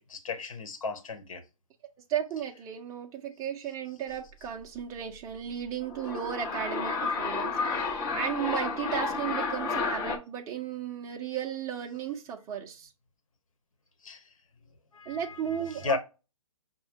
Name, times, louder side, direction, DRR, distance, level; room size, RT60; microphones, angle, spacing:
voice 1, 0.0-1.4 14.0-14.3 14.9-16.0, left 4 dB, 65° left, 1.1 m, -35 dB
voice 2, 2.1-12.9 15.1-16.0, right 9 dB, 15° right, 0.6 m, -35 dB
sound 1, 5.8-10.2, left 4 dB, 20° left, 0.8 m, -31 dB
6.0 x 2.2 x 3.5 m
hypercardioid pair, 135°, 18 cm